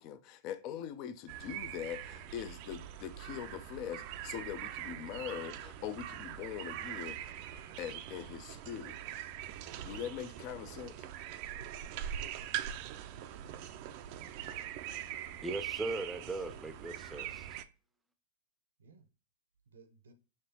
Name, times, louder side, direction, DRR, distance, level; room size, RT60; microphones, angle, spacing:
voice 1, 0.0-7.3 7.8-9.0 9.8-11.1, left 9 dB, 45° left, 0.5 m, -42 dB
sound 1, 1.3-17.6, right 11 dB, 50° right, 0.4 m, -43 dB
voice 2, 13.0-13.6 14.0-14.3 18.8-19.1 19.7-20.1, right 4 dB, 80° right, 0.7 m, -61 dB
voice 3, 15.4-17.5, right 2 dB, 5° right, 0.6 m, -39 dB
5.9 x 3.1 x 2.8 m
hypercardioid pair, 105°, 0 cm